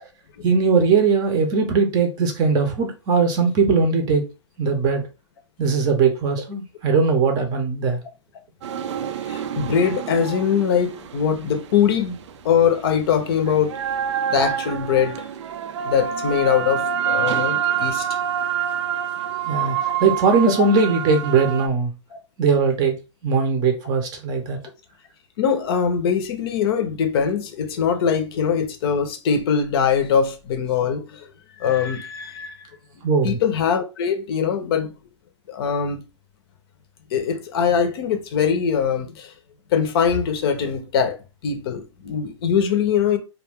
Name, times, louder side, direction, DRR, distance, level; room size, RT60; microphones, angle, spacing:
voice 1, 0.4-4.2 4.6-5.0 5.6-8.0 19.4-21.9 22.4-22.9 23.2-24.6 33.0-33.4, right 5 dB, 25° right, 0.6 m, -20 dB
sound 1, 8.6-12.4 12.6-21.7, right 8 dB, 65° right, 0.4 m, -27 dB
voice 2, 9.3-12.2 12.4-13.7 14.3-15.3 15.8-18.1 20.6-20.7 22.1-22.2 25.4-31.3 31.6-32.7 33.2-34.9 35.5-36.0 37.1-39.3 39.7-41.2 41.4-43.2, left 7 dB, 50° left, 0.6 m, -22 dB
2.4 x 2.2 x 3.5 m
hypercardioid pair, 140°, 16 cm